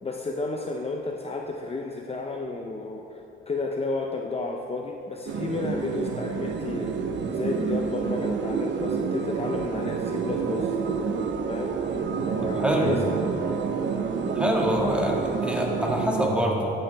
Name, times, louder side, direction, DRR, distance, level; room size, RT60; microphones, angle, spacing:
voice 1, 0.0-6.9 7.3-10.8 11.5-11.7 12.3-13.4, left 3 dB, 30° left, 1 dB, 0.8 m, -32 dB
sound 1, 5.3-16.3, right 5 dB, 65° right, 1.0 m, -28 dB
voice 2, 12.5-12.9 14.3-16.7, equal, 5° right, -1 dB, 1.9 m, -25 dB
14.5 x 10.5 x 3.5 m, 2.9 s
cardioid pair, 90°, 20 cm